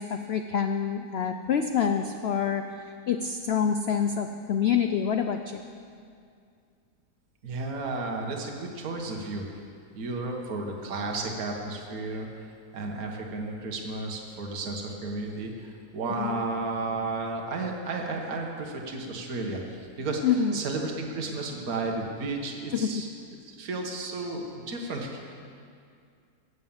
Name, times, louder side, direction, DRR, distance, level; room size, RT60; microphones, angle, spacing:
voice 1, 0.0-5.6 16.1-16.4 20.2-20.6 22.7-23.0, left 7 dB, 80° left, 6 dB, 0.5 m, -27 dB
voice 2, 7.4-9.4 10.0-12.5 12.7-23.1 23.5-25.4, right 3 dB, 60° right, 1 dB, 1.8 m, -33 dB
16.5 x 7.4 x 7.2 m, 2.3 s
omnidirectional pair, 1.7 m